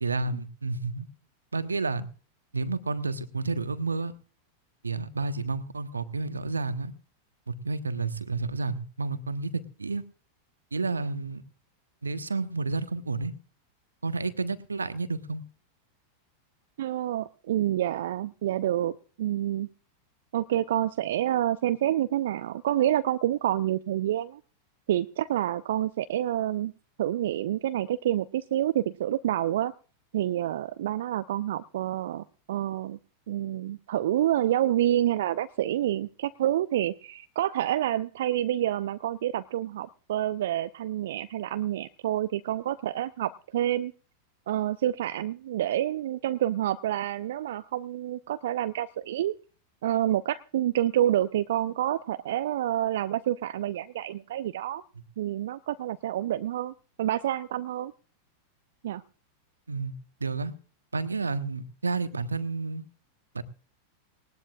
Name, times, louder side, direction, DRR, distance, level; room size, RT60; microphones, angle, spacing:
voice 1, 0.0-1.1 1.5-2.1 2.5-4.1 4.8-6.9 7.5-10.0 10.7-11.4 12.0-13.3 14.0-15.4 59.7-59.9 60.2-60.5 60.9-62.8 63.3-63.4, right 3 dB, 75° right, 12 dB, 1.2 m, -30 dB
voice 2, 16.8-18.9 19.2-19.7 20.3-24.4 24.9-26.7 27.0-29.7 30.1-33.0 33.3-43.9 44.5-49.3 49.8-54.8 55.2-56.7 57.0-57.9 58.8-59.0, right 12 dB, 60° right, 13 dB, 0.6 m, -28 dB
19.5 x 19.0 x 2.5 m, 0.39 s
figure-of-eight pair, 90°, 0 cm